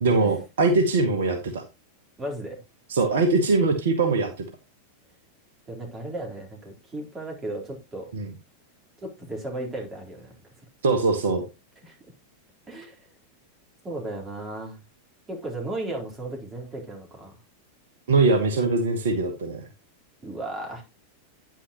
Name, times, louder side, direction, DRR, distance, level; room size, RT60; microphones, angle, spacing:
voice 1, 0.0-1.6 2.9-4.3 8.1-8.3 10.8-11.4 18.1-19.6, right 3 dB, 60° right, 5 dB, 1.5 m, -22 dB
voice 2, 2.2-2.6 5.7-8.1 9.0-10.3 11.8-12.0 12.7-13.1 13.8-14.8 15.3-17.4 20.2-20.8, right 1 dB, 20° right, 0 dB, 4.0 m, -35 dB
9.8 x 9.0 x 3.0 m, 0.24 s
figure-of-eight pair, 90°, 0 cm